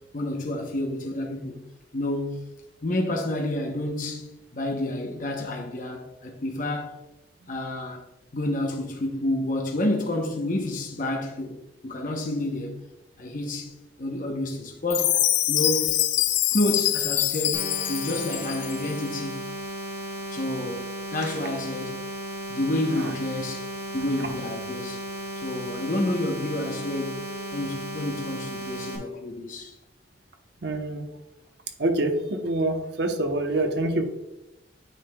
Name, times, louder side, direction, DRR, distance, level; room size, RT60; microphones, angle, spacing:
voice 1, 0.1-1.6 1.9-2.5 2.8-7.0 7.5-8.0 8.3-11.6 11.8-12.8 13.2-16.0 16.5-19.4 20.3-22.0 22.5-23.7 23.9-25.1 25.4-27.3 27.5-29.8, left 1 dB, 45° left, 0.8 m, -29 dB
Chime, 14.9-18.9, left 14 dB, 75° left, 0.4 m, -25 dB
sound 1, 17.5-29.0, right 1 dB, 20° right, 1.9 m, -35 dB
voice 2, 30.6-31.0 31.8-34.0, right 2 dB, 65° right, 0.9 m, -26 dB
9.1 x 5.6 x 2.2 m
head